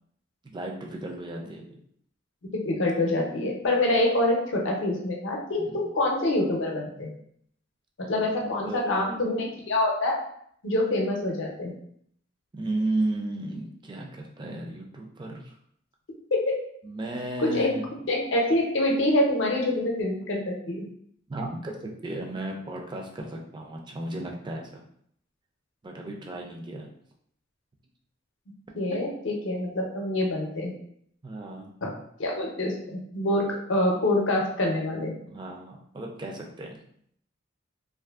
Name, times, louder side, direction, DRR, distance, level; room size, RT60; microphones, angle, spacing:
voice 1, 0.4-1.8 5.6-5.9 8.0-9.2 12.5-15.6 16.8-17.8 21.3-24.8 25.8-26.9 31.2-31.7 35.3-36.9, right 2 dB, 25° right, 0 dB, 0.4 m, -34 dB
voice 2, 2.5-7.1 8.0-10.2 10.6-11.7 16.3-16.5 17.4-17.7 18.1-20.9 28.8-30.7 31.8-31.9 32.2-35.1, left 1 dB, 75° left, 0 dB, 0.6 m, -26 dB
2.5 x 2.4 x 2.3 m, 0.68 s
head